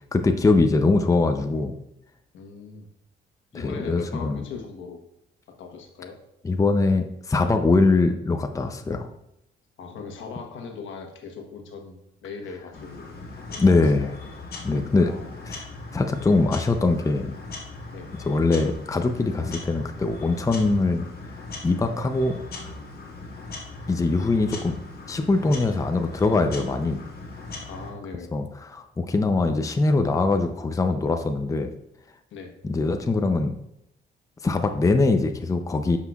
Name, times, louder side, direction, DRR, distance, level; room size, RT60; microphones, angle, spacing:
voice 1, 0.1-1.8 3.6-4.4 6.4-9.1 13.6-14.1 14.6-15.1 15.5-15.6 15.9-17.3 18.2-21.0 21.6-22.4 23.9-24.8 25.1-27.0 28.3-28.5 28.7-31.7 32.6-33.6 34.4-36.0, left 3 dB, 15° left, 6 dB, 0.6 m, -22 dB
voice 2, 2.3-2.9 3.5-5.0 5.5-6.2 8.8-9.1 9.8-13.1 13.5-14.1 15.0-15.4 17.9-18.1 27.6-28.3 32.3-32.5, left 5 dB, 80° left, 3 dB, 1.2 m, -39 dB
sound 1, 12.7-27.9, left 3 dB, 50° left, 1.9 m, -39 dB
10.0 x 5.7 x 2.4 m, 0.82 s
cardioid pair, 90°, 20 cm